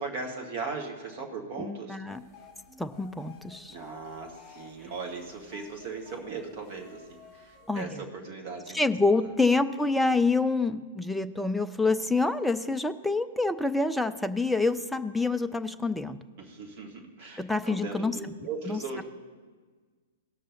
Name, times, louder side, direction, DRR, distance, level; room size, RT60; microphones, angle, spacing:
voice 1, 0.0-2.0 3.7-8.8 9.2-9.3 16.4-19.0, right 4 dB, 40° right, 3 dB, 1.8 m, -38 dB
voice 2, 1.6-2.2 2.8-3.8 7.7-7.9 8.7-16.2 17.4-18.2 18.7-19.0, left 3 dB, ahead, 8 dB, 0.4 m, -27 dB
sound 1, 2.1-7.7, left 6 dB, 20° left, 1.6 m, -54 dB
17.5 x 6.2 x 4.1 m, 1.4 s
figure-of-eight pair, 110°, 0 cm